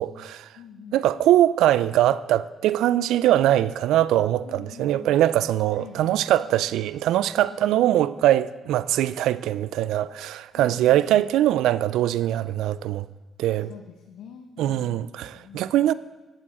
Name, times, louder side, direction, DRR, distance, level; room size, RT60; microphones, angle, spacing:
voice 1, 0.0-0.5 0.9-13.1 13.4-13.7 14.6-15.9, right 13 dB, 85° right, 0.3 m, -22 dB
voice 2, 0.5-1.0 4.4-5.2 5.7-6.2 7.5-8.0 10.5-11.3 13.6-15.0 15.3-15.7, left 7 dB, 85° left, 0.8 m, -45 dB
12.0 x 8.6 x 4.2 m
cardioid pair, 90°, 0 cm